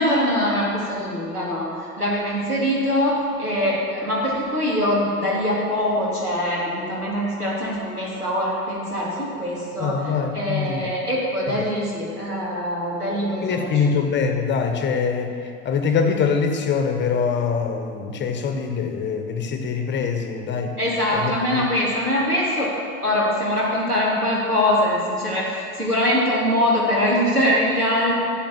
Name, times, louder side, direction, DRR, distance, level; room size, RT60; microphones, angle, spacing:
voice 1, 0.0-13.8 20.8-22.7 23.0-28.1, left 1 dB, 85° right, -5 dB, 2.9 m, -23 dB
voice 2, 9.8-10.9 11.5-11.6 13.4-15.4 15.6-20.8 21.1-21.6, left 6 dB, 25° left, 5 dB, 1.0 m, -24 dB
9.0 x 7.3 x 7.6 m, 2.3 s
figure-of-eight pair, 80°, 44 cm